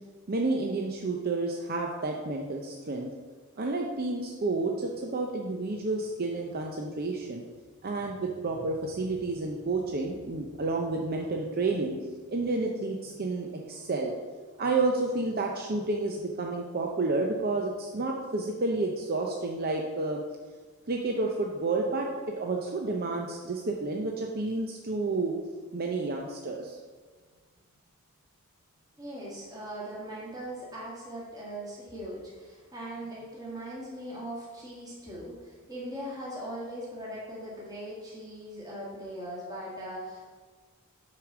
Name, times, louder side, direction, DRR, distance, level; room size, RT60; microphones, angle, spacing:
voice 1, 0.3-3.1 3.6-7.4 7.8-12.0 12.3-14.1 14.6-20.2 20.9-22.1 22.4-25.3 25.7-26.8, right 3 dB, 45° right, 1 dB, 0.6 m, -30 dB
voice 2, 29.0-40.3, right 1 dB, 15° right, -6 dB, 1.7 m, -40 dB
6.8 x 4.9 x 6.0 m, 1.4 s
head